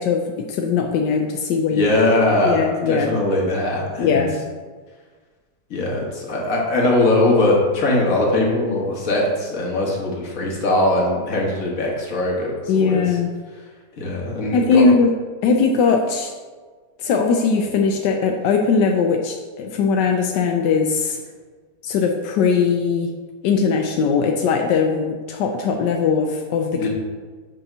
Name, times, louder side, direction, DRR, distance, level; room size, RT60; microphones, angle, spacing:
voice 1, 0.0-1.9 2.4-3.1 4.0-4.4 12.7-13.3 14.5-15.1 15.4-16.3 17.0-21.2 21.8-23.1 23.4-26.9, left 5 dB, 85° left, 3 dB, 1.2 m, -19 dB
voice 2, 1.7-4.3 5.7-13.0 14.0-14.8 26.7-26.9, left 2 dB, 55° left, -2 dB, 1.7 m, -20 dB
7.8 x 2.8 x 5.9 m, 1.4 s
omnidirectional pair, 1.8 m